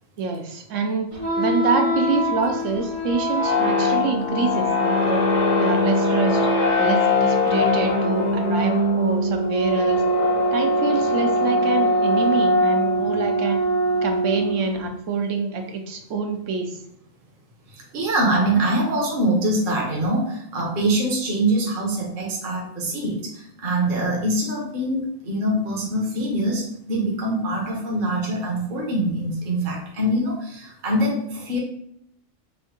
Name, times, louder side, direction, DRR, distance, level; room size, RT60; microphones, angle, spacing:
voice 1, 0.2-1.1 1.4-5.2 5.6-6.4 6.8-10.0 10.5-13.6 14.0-16.7, right 5 dB, 70° right, 4 dB, 1.0 m, -26 dB
sound 1, 1.1-14.9, left 1 dB, 65° left, 1.1 m, -21 dB
voice 2, 17.7-31.6, right 1 dB, 45° right, -2 dB, 1.0 m, -24 dB
3.5 x 2.6 x 3.8 m, 0.72 s
omnidirectional pair, 1.3 m